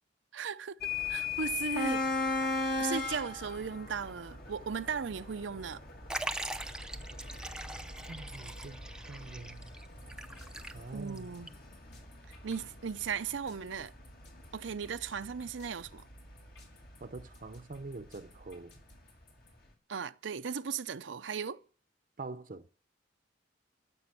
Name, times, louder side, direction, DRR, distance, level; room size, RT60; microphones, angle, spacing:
voice 1, 0.3-2.0 2.3-2.4 2.8-5.8 10.9-11.6 12.4-13.9 14.5-16.0 19.9-21.6, right 6 dB, 85° right, 0.6 m, -37 dB
sound 1, 0.8-18.5, left 3 dB, 55° left, 2.5 m, -39 dB
Liquid, 6.1-11.2 11.5-11.6 12.5-12.6, right 1 dB, 5° right, 0.5 m, -41 dB
voice 2, 8.1-8.8 9.1-9.6 10.7-11.3 17.0-18.7 22.2-22.7, right 3 dB, 45° right, 0.7 m, -44 dB
sound 2, 10.0-19.5, left 2 dB, 75° left, 4.6 m, -59 dB
14.0 x 7.0 x 8.5 m
head